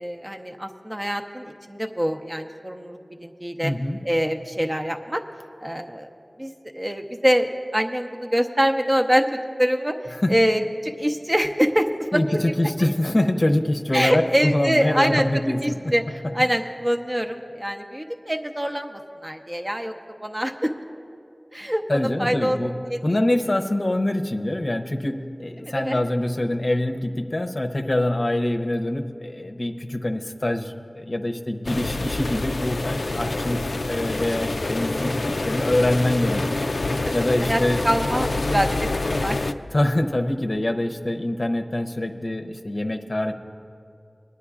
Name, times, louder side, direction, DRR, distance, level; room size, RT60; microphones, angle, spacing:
voice 1, 0.0-3.7 4.0-5.2 5.6-6.1 6.4-9.3 9.6-12.4 13.9-15.3 15.6-19.9 20.2-20.7 21.5-21.8 22.2-22.6 22.9-23.0 25.6-26.0 32.3-32.5 37.0-37.1 37.4-39.4, equal, 25° right, 3 dB, 0.7 m, -24 dB
voice 2, 3.6-4.0 10.2-10.3 12.1-15.9 16.4-16.5 21.9-22.7 23.0-36.7 37.1-37.8 39.7-43.3, left 1 dB, 55° left, 4 dB, 0.6 m, -24 dB
sound 1, 31.7-39.5, left 2 dB, 85° left, 0.3 m, -26 dB
22.0 x 9.8 x 2.4 m, 2.5 s
wide cardioid pair, 40°, 0 cm